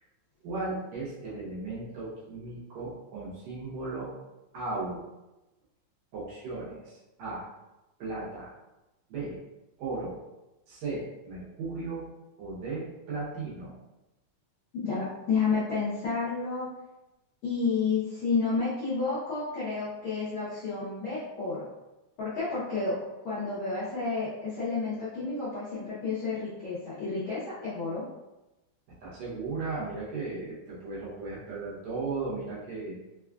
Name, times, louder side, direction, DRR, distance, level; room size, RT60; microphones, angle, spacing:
voice 1, 0.4-4.1 4.5-5.0 6.1-7.5 8.0-8.5 9.1-9.4 9.8-10.2 10.7-12.1 12.4-13.8 29.0-33.0, right 3 dB, 70° right, -7 dB, 1.9 m, -36 dB
voice 2, 14.7-16.7 17.4-21.7 22.2-23.0 23.2-28.0, left 4 dB, 85° left, -10 dB, 1.1 m, -30 dB
4.8 x 2.3 x 2.3 m, 1.0 s
omnidirectional pair, 3.6 m